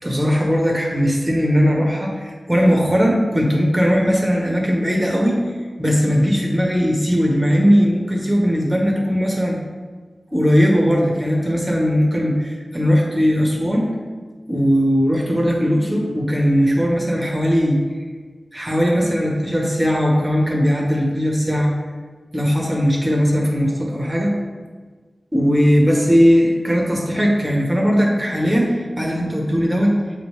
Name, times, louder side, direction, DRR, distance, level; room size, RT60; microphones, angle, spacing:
voice 1, 0.0-5.4 5.8-9.6 10.3-13.9 14.5-17.8 18.5-21.7 22.3-24.3 25.3-29.9, equal, 20° right, -1 dB, 1.3 m, -18 dB
7.4 x 3.3 x 4.9 m, 1.5 s
cardioid pair, 45°, 0 cm